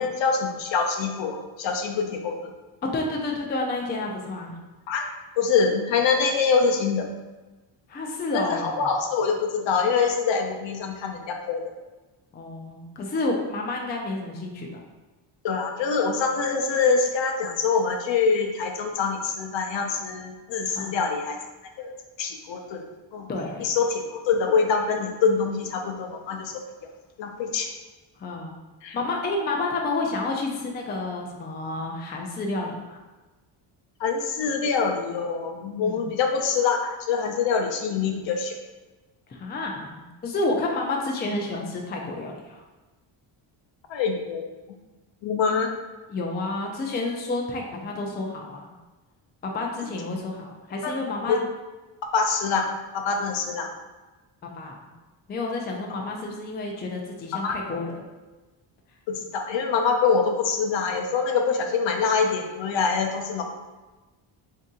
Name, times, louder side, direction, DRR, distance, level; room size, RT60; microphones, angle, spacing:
voice 1, 0.0-2.4 4.9-5.1 5.4-7.1 8.3-11.6 15.4-21.4 21.8-22.8 23.1-23.3 23.6-26.6 27.2-27.7 28.8-29.0 34.0-38.6 43.9-44.4 45.2-45.7 50.8-50.9 51.3-51.4 52.1-53.7 57.3-57.6 59.1-63.4, left 5 dB, 65° left, 3 dB, 0.7 m, -25 dB
voice 2, 2.8-4.5 7.9-8.9 12.3-14.8 20.7-21.0 23.3-23.7 28.2-28.6 28.9-33.0 35.8-36.1 39.3-42.6 46.1-48.8 49.4-51.4 54.4-54.8 55.3-58.0, left 2 dB, 20° left, 1 dB, 0.4 m, -30 dB
3.7 x 2.8 x 3.6 m, 1.2 s
cardioid pair, 135°, 49 cm